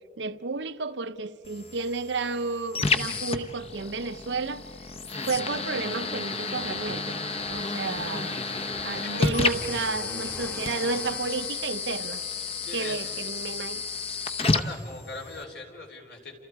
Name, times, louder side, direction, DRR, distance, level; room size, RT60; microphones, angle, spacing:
voice 1, 0.2-4.6 5.3-7.2 7.5-8.4 8.8-12.2 12.7-13.8, right 3 dB, 85° right, 0.8 m, -31 dB
sound 1, 1.4-15.4, left 4 dB, 35° left, 0.8 m, -31 dB
sound 2, 5.4-12.3, left 1 dB, 10° left, 1.1 m, -44 dB
voice 2, 8.9-9.6 12.6-13.2 14.5-16.4, left 3 dB, 70° left, 3.9 m, -40 dB
29.5 x 27.5 x 4.7 m
head